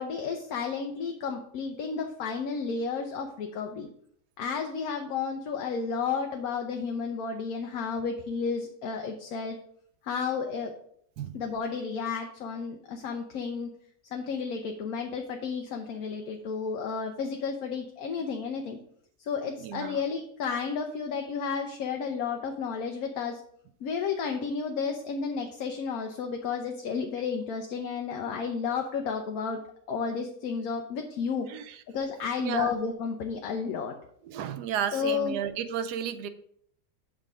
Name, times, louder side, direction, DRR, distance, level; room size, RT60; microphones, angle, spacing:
voice 1, 0.0-3.9 4.4-9.6 10.0-10.7 11.3-13.7 14.1-18.8 19.2-23.4 23.8-29.6 29.9-31.5 31.9-33.9 34.9-35.3, left 5 dB, 70° left, 3 dB, 1.1 m, -32 dB
voice 2, 19.6-20.0 31.5-31.8 32.4-32.7 34.2-36.3, right 9 dB, 90° right, 11 dB, 1.2 m, -33 dB
7.6 x 3.7 x 4.8 m, 0.66 s
omnidirectional pair, 1.7 m